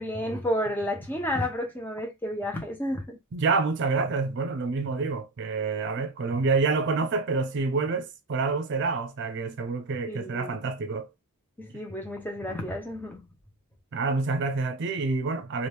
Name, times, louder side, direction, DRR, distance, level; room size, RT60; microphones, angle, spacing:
voice 1, 0.0-3.2 10.1-10.7 11.6-13.3, left 1 dB, 10° left, 0.9 m, -31 dB
voice 2, 3.3-11.1 13.9-15.7, right 4 dB, 55° right, 0.5 m, -27 dB
2.9 x 2.5 x 3.3 m
head